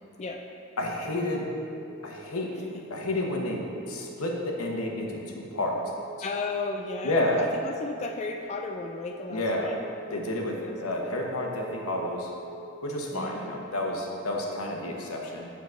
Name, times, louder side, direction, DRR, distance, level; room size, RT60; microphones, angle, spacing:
voice 1, 0.8-1.5 2.0-2.5 2.9-5.8 7.0-7.4 9.3-9.7 10.1-12.3 12.8-15.5, left 1 dB, 90° left, 0 dB, 1.0 m, -30 dB
sound 1, 1.6-13.6, right 2 dB, 60° right, 0.4 m, -46 dB
voice 2, 6.2-9.8 10.6-11.4 13.1-13.6, left 3 dB, 30° left, 3 dB, 0.3 m, -35 dB
7.0 x 4.0 x 6.2 m, 2.6 s
head